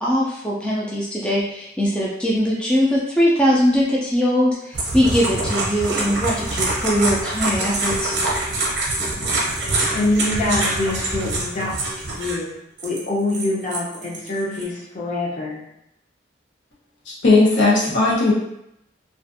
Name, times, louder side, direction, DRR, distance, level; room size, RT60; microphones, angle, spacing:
voice 1, 0.0-8.1, equal, 5° left, -5 dB, 0.3 m, -21 dB
sound 1, 4.7-12.4 12.8-14.6, right 2 dB, 65° right, 0.6 m, -25 dB
voice 2, 9.9-11.7 12.1-12.5 12.8-15.6, left 2 dB, 40° left, -4 dB, 0.7 m, -24 dB
voice 3, 17.1-18.3, left 3 dB, 85° left, -5 dB, 0.8 m, -16 dB
2.4 x 2.4 x 2.5 m, 0.79 s
head